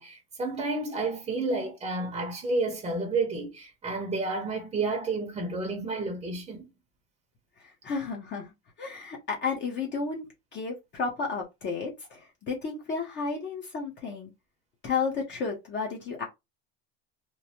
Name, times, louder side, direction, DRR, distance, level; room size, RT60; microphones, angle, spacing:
voice 1, 0.0-6.7, right 3 dB, 20° right, 0.7 m, -30 dB
voice 2, 7.6-8.5 8.8-10.2 10.5-14.3 14.8-16.2, left 5 dB, 40° left, 0.8 m, -32 dB
3.1 x 2.1 x 2.8 m
cardioid pair, 125°, 29 cm